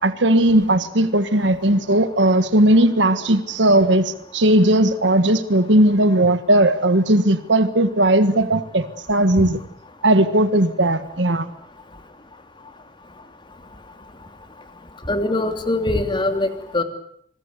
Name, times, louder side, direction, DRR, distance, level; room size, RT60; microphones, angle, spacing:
voice 1, 0.0-9.6 10.0-11.5, right 1 dB, 80° right, 10 dB, 1.5 m, -17 dB
voice 2, 15.1-16.8, left 2 dB, 25° left, 7 dB, 2.9 m, -22 dB
26.5 x 20.0 x 8.3 m, 0.69 s
head